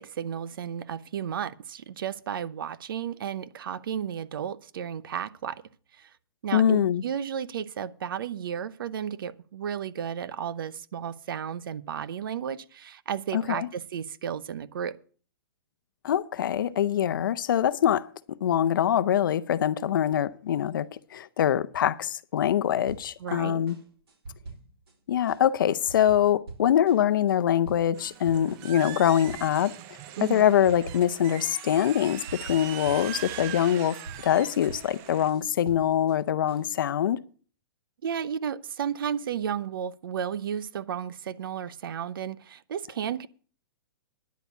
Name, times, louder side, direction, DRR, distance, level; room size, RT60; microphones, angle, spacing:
voice 1, 0.0-5.6 6.0-6.1 6.4-15.0 23.2-23.6 30.2-30.5 38.0-43.3, right 8 dB, 65° right, 0.8 m, -33 dB
voice 2, 6.5-7.0 13.3-13.7 16.0-18.1 18.4-23.8 25.1-29.7 30.2-34.0 34.2-37.2, left 10 dB, 60° left, 0.7 m, -24 dB
sound 1, 22.9-23.4 23.7-24.9 25.3-29.0 29.3-29.8 30.1-31.4 31.7-36.2 36.5-36.9, right 3 dB, 90° right, 3.9 m, -46 dB
sound 2, 27.9-35.3, right 12 dB, 20° right, 0.5 m, -41 dB
10.5 x 7.1 x 8.2 m
hypercardioid pair, 165°, 12 cm